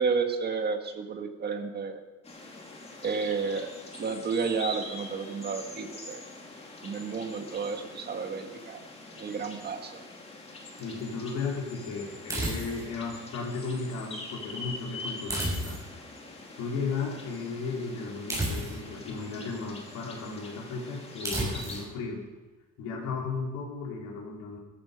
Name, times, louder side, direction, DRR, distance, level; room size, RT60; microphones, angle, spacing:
voice 1, 0.0-2.0 3.0-3.7 4.0-6.2 6.8-8.8 9.1-10.0, right 5 dB, 35° right, 5 dB, 1.8 m, -31 dB
sound 1, 2.2-21.8, left 2 dB, 20° left, 2.5 m, -44 dB
voice 2, 10.8-15.8 16.6-22.2 22.8-24.6, left 4 dB, 75° left, -2 dB, 4.3 m, -35 dB
sound 2, 12.3-13.0 15.3-16.0 18.3-19.0 21.2-21.9, right 1 dB, 10° right, 6.8 m, -32 dB
17.0 x 14.5 x 5.4 m, 1.2 s
cardioid pair, 160°, 29 cm